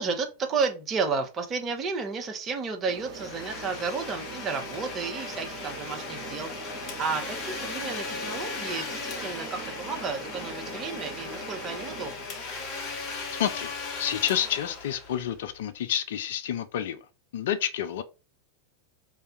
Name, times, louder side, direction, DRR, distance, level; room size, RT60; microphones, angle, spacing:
voice 1, 0.0-12.3, right 4 dB, 25° right, 0.9 m, -32 dB
sound 1, 2.9-12.1, right 6 dB, 50° right, 1.1 m, -42 dB
Domestic sounds home sounds, 3.0-15.6, left 4 dB, 35° left, 0.9 m, -37 dB
voice 2, 13.3-13.7 14.0-17.1 17.3-18.0, left 10 dB, 55° left, 0.4 m, -29 dB
3.3 x 2.6 x 4.3 m
figure-of-eight pair, 90°, 0 cm